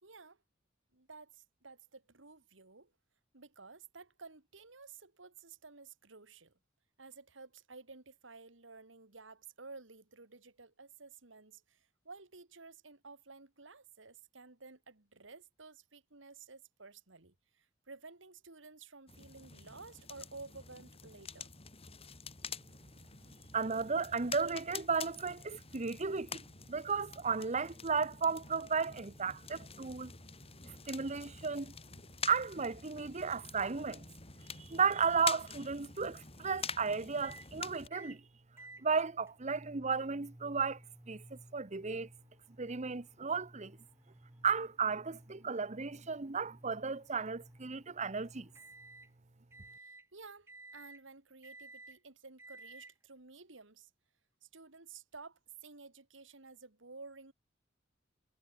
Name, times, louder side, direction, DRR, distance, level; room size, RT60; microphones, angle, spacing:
voice 1, 0.0-0.4 0.9-2.9 3.3-6.6 7.0-21.5 49.8-53.9 54.4-57.3, right 4 dB, 80° right, 2.5 m, -53 dB
sound 1, 19.1-37.9, left 6 dB, 30° left, 5.1 m, -47 dB
voice 2, 23.5-30.1 30.6-31.7 32.2-34.0 34.5-38.2 38.8-40.8 41.1-42.1 42.6-43.8 44.4-48.5, right 5 dB, 40° right, 1.0 m, -34 dB
sound 2, 37.2-37.5 37.9-38.2 38.6-49.1 49.5-50.1 50.5-51.0 51.4-52.0 52.4-52.9, right 2 dB, 15° right, 6.7 m, -56 dB
head